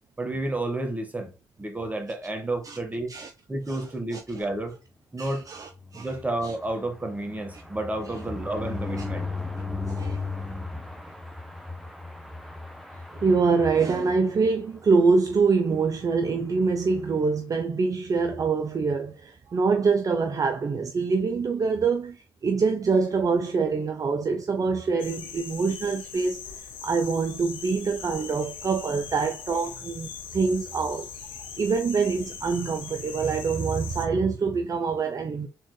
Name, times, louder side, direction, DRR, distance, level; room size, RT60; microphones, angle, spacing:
voice 1, 0.2-1.3 1.6-3.1 3.5-4.7 5.1-5.5 5.9-9.3, right 2 dB, 20° right, 1.4 m, -31 dB
voice 2, 3.7-4.4 5.2-6.1 9.9-10.3 13.2-26.4 26.8-31.1 31.6-35.5, right 4 dB, 45° right, 0.6 m, -25 dB
sound 1, 5.7-14.5 15.0-15.1 15.4-15.5 15.7-16.0, left 3 dB, ahead, 1.0 m, -36 dB
sound 2, 25.0-34.1, left 7 dB, 85° left, 0.7 m, -41 dB
4.4 x 3.6 x 3.2 m
supercardioid pair, 60°, 8 cm